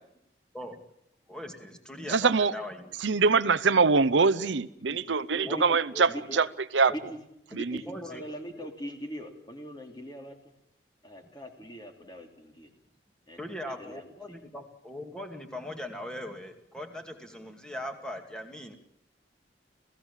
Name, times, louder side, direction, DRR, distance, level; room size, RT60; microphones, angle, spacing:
voice 1, 1.3-2.9 3.9-4.3 5.4-5.6 5.9-6.4 7.8-8.2 8.5-8.7 13.4-18.7, left 1 dB, 5° left, 2.4 m, -40 dB
voice 2, 2.1-2.5 3.0-6.5 6.7-6.9 7.5-7.8, right 4 dB, 85° right, 0.8 m, -23 dB
voice 3, 4.8-5.6 6.1-6.4 6.9-7.2 7.5-10.5 11.0-12.7 13.3-14.4, equal, 25° left, 3.1 m, -42 dB
28.5 x 16.5 x 7.4 m
head